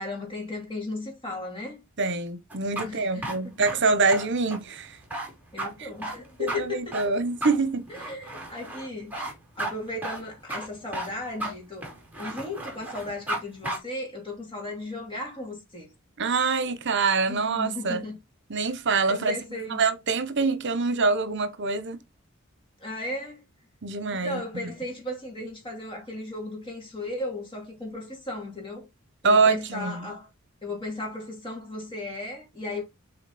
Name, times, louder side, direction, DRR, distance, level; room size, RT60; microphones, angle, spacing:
voice 1, 0.0-1.8 2.8-3.6 3.9-4.0 5.5-6.8 8.0-9.3 9.6-11.9 12.2-15.9 17.3-18.2 19.1-19.8 22.8-23.4 24.1-28.9 29.2-30.3 30.6-32.8, left 2 dB, 25° left, 2.7 m, -35 dB
voice 2, 2.0-5.0 5.8-5.9 6.4-7.9 16.2-18.0 18.5-19.4 19.7-22.0 23.8-24.4 29.2-30.1, right 4 dB, 60° right, 0.9 m, -25 dB
sound 1, 2.5-13.4 13.6-13.8, right 2 dB, 10° right, 2.6 m, -34 dB
7.1 x 4.1 x 4.2 m
head